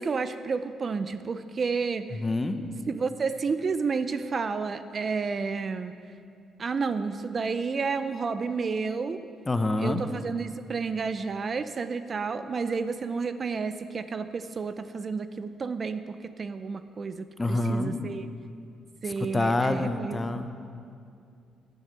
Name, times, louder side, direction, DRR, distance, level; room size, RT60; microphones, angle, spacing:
voice 1, 0.0-2.1 2.9-5.9 6.6-9.2 9.8-18.2 19.0-20.2, right 5 dB, 40° right, 11 dB, 0.6 m, -31 dB
voice 2, 2.1-2.7 9.5-10.1 17.4-18.0 19.0-20.5, left 2 dB, 20° left, 8 dB, 0.8 m, -27 dB
11.0 x 10.5 x 6.7 m, 2.4 s
cardioid pair, 90°, 0 cm